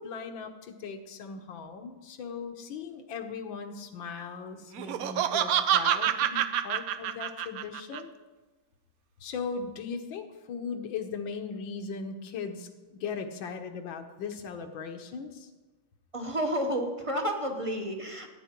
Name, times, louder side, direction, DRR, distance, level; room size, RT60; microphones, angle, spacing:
voice 1, 0.0-8.1 9.2-12.7 13.0-15.5, left 5 dB, 80° left, 6 dB, 1.7 m, -38 dB
Laughter, 4.7-8.0, right 10 dB, 75° right, 0.8 m, -27 dB
voice 2, 16.1-18.3, equal, 25° right, 3 dB, 0.8 m, -30 dB
14.0 x 9.5 x 4.5 m, 1.2 s
omnidirectional pair, 2.1 m